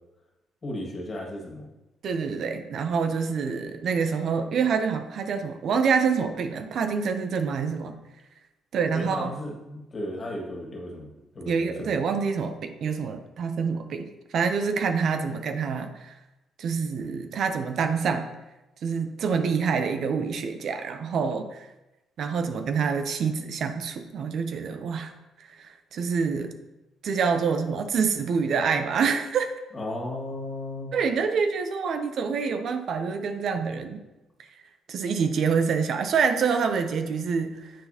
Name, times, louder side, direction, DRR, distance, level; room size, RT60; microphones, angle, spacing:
voice 1, 0.6-1.7 8.9-11.1 11.3-11.9 29.7-30.9, left 1 dB, 35° left, -2 dB, 1.8 m, -35 dB
voice 2, 2.0-7.9 8.7-9.3 11.5-16.1 16.6-18.3 18.8-21.7 22.2-25.1 25.4-26.5 27.0-29.5 30.9-34.0 34.9-37.7, right 5 dB, 65° right, 8 dB, 0.5 m, -26 dB
9.2 x 4.0 x 2.8 m, 0.99 s
cardioid pair, 90°, 0 cm